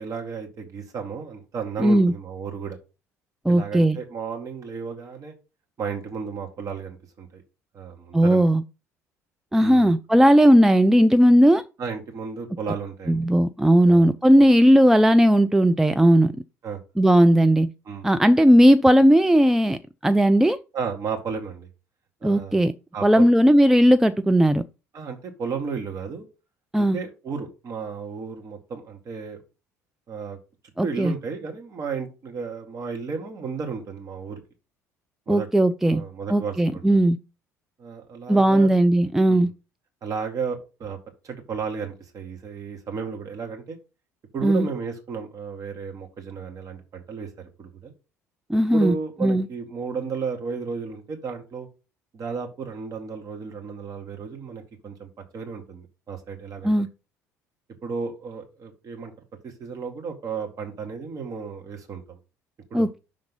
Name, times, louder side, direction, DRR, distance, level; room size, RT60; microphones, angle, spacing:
voice 1, 0.0-2.8 3.5-5.3 5.8-7.4 7.7-8.5 9.6-9.9 11.8-13.3 13.8-14.1 14.4-14.5 16.6-16.8 17.9-18.1 20.7-21.7 22.2-22.6 22.9-23.3 24.9-26.3 26.8-29.4 30.1-30.4 30.8-34.4 35.3-37.0 37.8-38.7 39.3-39.5 40.0-41.0 41.2-43.8 44.3-47.3 47.6-47.9 48.7-51.7 52.1-56.9 57.8-59.1 59.4-62.2 62.7-62.9, right 5 dB, 40° right, 1.8 m, -33 dB
voice 2, 1.8-2.1 3.5-4.0 8.1-8.6 9.5-11.6 13.1-16.3 17.0-17.7 18.0-20.6 22.2-22.7 23.0-24.6 26.7-27.0 30.8-31.1 35.3-36.0 36.3-37.2 38.3-39.5 44.4-44.7 48.5-48.9 49.2-49.5 56.6-56.9 62.7-63.0, equal, 5° right, 0.4 m, -17 dB
5.9 x 3.7 x 5.4 m
figure-of-eight pair, 55°, 9 cm